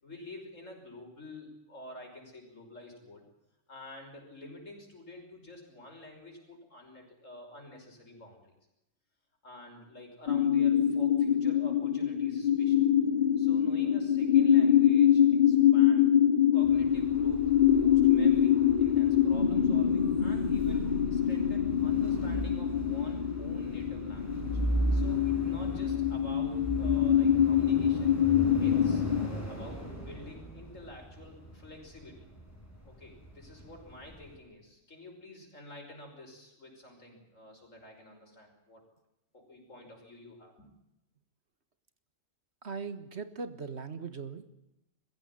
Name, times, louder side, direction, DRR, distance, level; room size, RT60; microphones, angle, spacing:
voice 1, 0.0-3.3 3.7-8.4 9.4-12.8 13.4-16.1 16.5-24.5 24.9-28.2 28.6-29.0 29.5-32.3 32.9-38.8 39.3-40.7, left 1 dB, 90° left, 2 dB, 6.1 m, -49 dB
sound 1, 10.3-29.3, left 9 dB, 40° left, 1.0 m, -25 dB
sound 2, 16.6-34.4, right 1 dB, 10° left, 5.7 m, -38 dB
voice 2, 42.6-44.4, right 5 dB, 60° right, 10 dB, 1.8 m, -39 dB
22.0 x 15.5 x 9.8 m, 0.90 s
omnidirectional pair, 1.3 m